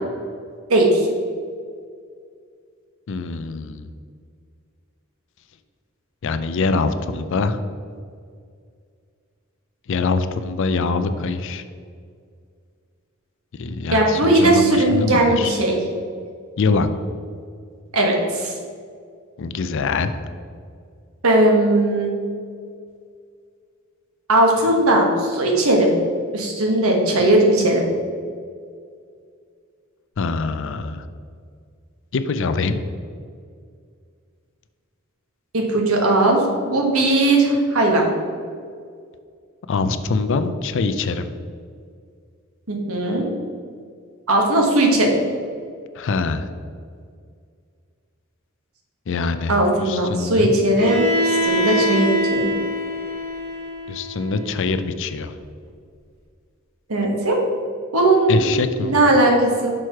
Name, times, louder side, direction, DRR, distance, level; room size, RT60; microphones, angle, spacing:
voice 1, 0.7-1.1 13.9-15.8 17.9-18.5 21.2-22.1 24.3-26.0 26.3-27.9 35.5-38.0 42.7-43.2 44.3-45.1 49.5-52.5 56.9-57.4 57.9-58.5 58.8-59.7, right 1 dB, 90° right, 1 dB, 1.3 m, -18 dB
voice 2, 3.1-3.9 6.2-7.6 9.9-11.6 13.6-15.5 16.6-16.9 19.4-20.2 30.2-31.1 32.1-32.8 39.7-41.3 46.0-46.5 49.1-50.6 53.9-55.3 58.3-58.9, left 4 dB, 60° left, 10 dB, 0.4 m, -24 dB
Bowed string instrument, 50.8-54.7, equal, 45° right, 1.7 m, -24 dB
6.2 x 4.6 x 4.6 m, 2.2 s
head